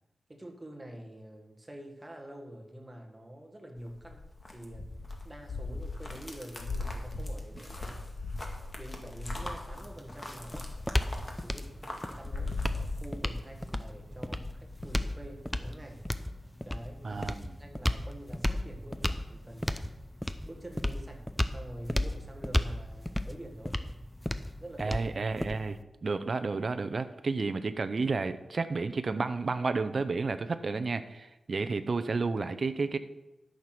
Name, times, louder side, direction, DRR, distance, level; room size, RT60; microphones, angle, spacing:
voice 1, 0.3-5.0 5.2-8.1 8.8-10.8 11.4-16.1 16.6-17.2 17.6-19.9 20.4-21.3 21.5-23.8 24.6-25.0, right 1 dB, 15° right, 3 dB, 1.7 m, -46 dB
sound 1, 3.8-13.7 14.0-14.9, left 2 dB, 30° left, 1.9 m, -39 dB
sound 2, 9.8-25.8, left 1 dB, 5° left, 0.6 m, -34 dB
voice 2, 17.0-17.6 24.8-33.0, right 4 dB, 50° right, 10 dB, 0.7 m, -31 dB
13.0 x 6.6 x 6.0 m, 1.0 s
wide cardioid pair, 115°, 0 cm